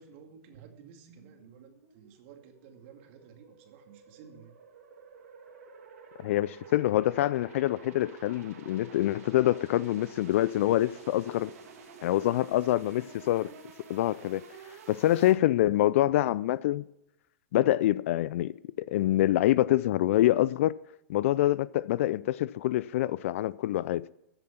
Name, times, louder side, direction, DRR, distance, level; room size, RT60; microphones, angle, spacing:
voice 1, 0.0-4.6, right 6 dB, 50° right, 2.2 m, -53 dB
sound 1, 0.5-15.3, right 5 dB, 70° right, 2.8 m, -51 dB
voice 2, 6.2-11.5 12.0-13.5 13.9-14.4 14.9-16.9 17.5-20.7 21.1-24.1, left 14 dB, 55° left, 0.4 m, -26 dB
14.0 x 7.6 x 5.7 m
hypercardioid pair, 125°, 8 cm